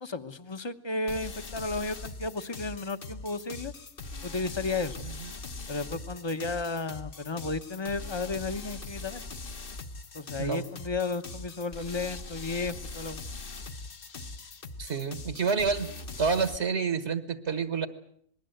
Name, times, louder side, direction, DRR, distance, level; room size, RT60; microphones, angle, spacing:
voice 1, 0.0-3.7 4.2-5.1 5.7-9.2 10.1-13.2, left 3 dB, 20° left, 10 dB, 1.0 m, -33 dB
sound 1, 1.1-16.6, left 3 dB, 45° left, 1.3 m, -41 dB
voice 2, 14.8-15.9 16.2-17.9, right 5 dB, 55° right, 11 dB, 1.6 m, -29 dB
26.5 x 20.0 x 7.9 m, 0.66 s
omnidirectional pair, 1.4 m